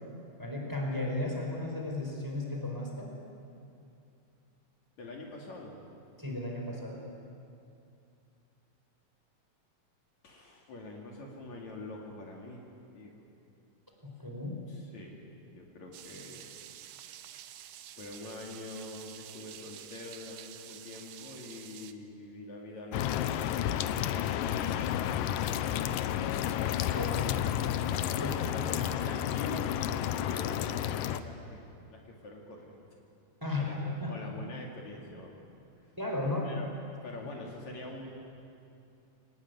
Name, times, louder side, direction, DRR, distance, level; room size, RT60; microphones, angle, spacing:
voice 1, 0.4-3.1 6.2-7.0 14.0-14.6 26.9-27.9 28.2-28.3 33.4-34.1 36.0-36.5, left 2 dB, 5° right, -1 dB, 4.4 m, -35 dB
voice 2, 5.0-5.8 10.2-12.7 12.9-13.2 14.7-16.6 18.0-26.1 28.1-32.8 33.6-35.4 36.4-36.7 37.0-38.3, left 2 dB, 60° left, -1 dB, 3.7 m, -45 dB
sound 1, 15.9-21.9, right 11 dB, 75° right, 2.3 m, -49 dB
sound 2, 22.9-31.2, left 11 dB, 85° left, 2.4 m, -31 dB
25.0 x 19.0 x 9.5 m, 2.6 s
omnidirectional pair, 3.8 m